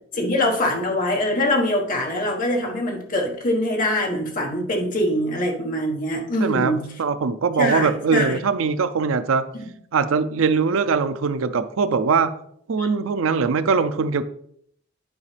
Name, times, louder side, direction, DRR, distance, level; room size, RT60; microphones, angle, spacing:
voice 1, 0.1-6.9 7.6-8.4 12.8-12.9, left 1 dB, 40° left, 0 dB, 1.3 m, -23 dB
voice 2, 6.4-9.4 9.9-12.3 12.7-14.2, right 5 dB, 70° right, 12 dB, 0.5 m, -21 dB
9.6 x 4.9 x 3.3 m, 0.67 s
head